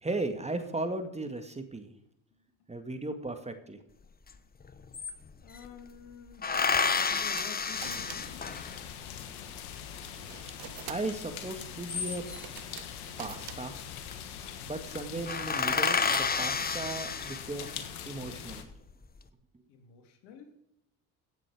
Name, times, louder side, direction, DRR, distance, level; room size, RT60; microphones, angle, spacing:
voice 1, 0.0-1.9 2.7-3.8 10.9-12.2 13.2-13.8 14.7-17.8 18.1-18.7, right 2 dB, 15° right, 7 dB, 2.0 m, -36 dB
sound 1, 4.3-4.4 4.6-5.7 6.4-8.9 11.6-12.6 13.7-14.1 14.4-14.6 14.9-15.0 15.3-17.8 18.4-19.0, left 5 dB, 20° left, 1.0 m, -30 dB
voice 2, 5.4-6.5 7.0-8.5 19.7-20.5, left 6 dB, 70° left, 5 dB, 3.0 m, -49 dB
sound 2, 6.5-17.7, right 12 dB, 55° right, 1.2 m, -49 dB
sound 3, 7.7-18.6, left 9 dB, 85° left, 1.6 m, -43 dB
16.5 x 7.6 x 5.1 m, 0.79 s
hypercardioid pair, 75°, 42 cm